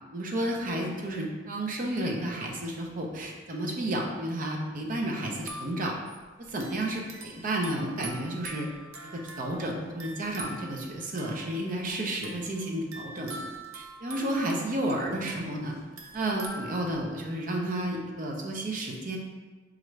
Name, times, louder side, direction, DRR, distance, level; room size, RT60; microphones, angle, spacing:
voice 1, 0.1-5.9 6.4-8.7 9.1-13.4 13.7-15.7 16.1-19.2, right 1 dB, 40° right, 0 dB, 0.5 m, -31 dB
sound 1, 5.3-17.3, right 2 dB, 90° right, 0.5 m, -45 dB
4.3 x 2.4 x 3.1 m, 1.4 s
head